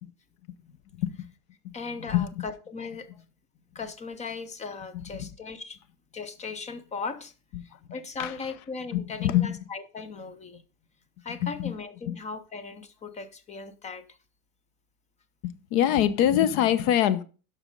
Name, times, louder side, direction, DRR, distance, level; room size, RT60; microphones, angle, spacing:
voice 1, 1.0-1.3 1.6-1.7 2.1-2.4 5.1-5.3 7.5-7.6 8.2-8.3 8.9-9.6 11.4-11.7 12.1-12.2 15.4-17.2, left 11 dB, 50° left, 1.0 m, -25 dB
voice 2, 1.7-3.3 3.7-5.8 6.1-7.3 7.6-10.6 11.2-14.2, left 4 dB, 15° left, 0.5 m, -38 dB
12.5 x 5.3 x 5.3 m
supercardioid pair, 150°, 49 cm